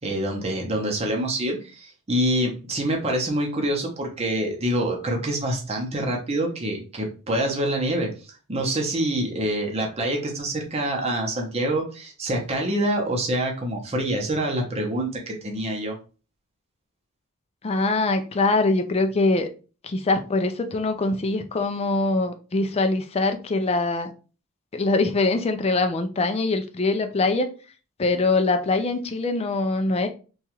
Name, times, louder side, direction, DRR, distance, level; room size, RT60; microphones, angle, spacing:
voice 1, 0.0-8.1 8.5-16.0, right 1 dB, 30° right, 1 dB, 0.7 m, -26 dB
voice 2, 17.6-19.5 19.8-24.1 24.7-27.5 28.0-30.1, left 3 dB, 25° left, 7 dB, 0.3 m, -23 dB
2.9 x 2.3 x 2.9 m, 0.35 s
head